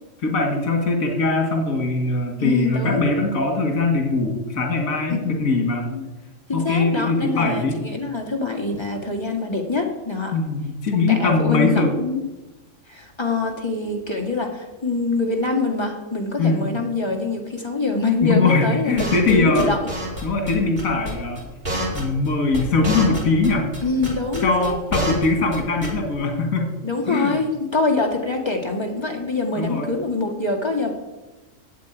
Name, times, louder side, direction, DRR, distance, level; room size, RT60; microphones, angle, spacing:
voice 1, 0.2-5.9 6.5-7.8 10.3-11.9 16.4-16.8 18.2-19.8 20.2-21.5 21.9-23.7 24.4-26.7 27.1-27.4 29.6-29.9, left 3 dB, 80° left, 2 dB, 2.0 m, -21 dB
voice 2, 2.4-3.1 5.1-5.4 5.8-6.0 6.5-10.3 10.9-12.3 12.9-19.8 23.8-24.8 25.0-25.2 26.2-26.4 26.8-30.9, left 3 dB, 20° left, 1 dB, 1.9 m, -25 dB
sound 1, 19.0-19.3 19.6-20.2 20.5-20.6 20.8-21.4 21.6-22.3 22.5-23.5 23.7-25.3 25.5-25.6 25.8-26.1, right 1 dB, 35° right, 3.4 m, -27 dB
8.5 x 7.7 x 9.0 m, 1.1 s
omnidirectional pair, 1.4 m